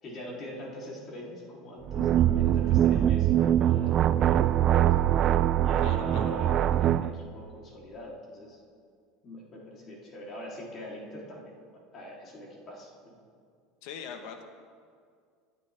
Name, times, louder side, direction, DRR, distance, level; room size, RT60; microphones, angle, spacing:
voice 1, 0.0-4.5 5.6-8.6 9.2-11.6 11.9-13.1, left 1 dB, 30° left, -4 dB, 3.4 m, -42 dB
sound 1, 1.9-7.1, right 11 dB, 35° right, 0.3 m, -23 dB
voice 2, 5.8-6.3 13.8-14.4, left 7 dB, 65° left, 6 dB, 1.3 m, -41 dB
24.5 x 9.5 x 3.5 m, 2.1 s
supercardioid pair, 150°, 0 cm